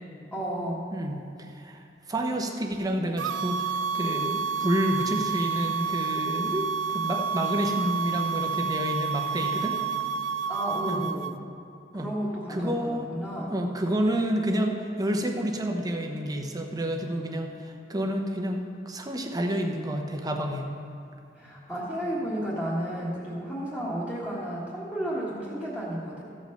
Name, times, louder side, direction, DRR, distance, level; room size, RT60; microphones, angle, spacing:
voice 1, 0.3-0.9 10.5-11.3 11.9-13.5 21.3-26.2, right 1 dB, 10° left, -9 dB, 1.6 m, -32 dB
voice 2, 0.9-9.8 10.9-11.0 11.9-12.1 12.5-13.1 13.5-20.7, equal, 20° right, 3 dB, 0.8 m, -29 dB
sound 1, 3.2-11.3, right 6 dB, 85° right, 0.4 m, -29 dB
14.5 x 5.2 x 6.6 m, 2.6 s
head